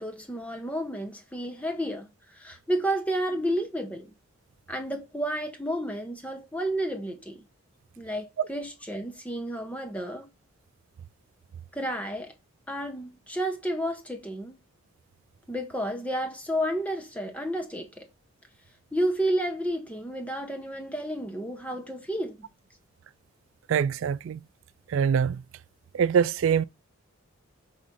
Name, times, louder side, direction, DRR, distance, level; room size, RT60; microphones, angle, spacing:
voice 1, 0.0-4.1 4.7-7.4 8.0-10.3 11.7-12.3 12.7-14.6 15.5-18.1 18.9-22.5, right 1 dB, 5° left, 1.4 m, -31 dB
voice 2, 23.7-24.4 24.9-25.4 25.9-26.6, right 7 dB, 70° right, 0.3 m, -24 dB
6.3 x 3.6 x 5.5 m
head